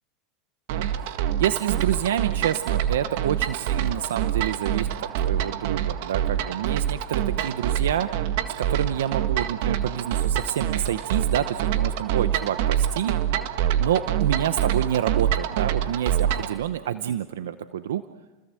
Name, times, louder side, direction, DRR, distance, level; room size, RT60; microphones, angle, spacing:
sound 1, 0.7-16.6, right 10 dB, 70° right, 1.8 m, -26 dB
voice 1, 1.4-4.9 5.2-8.1 8.6-13.2 13.8-18.0, right 10 dB, 90° right, 11 dB, 0.8 m, -28 dB
29.5 x 20.5 x 7.6 m, 1.2 s
supercardioid pair, 115°, 0 cm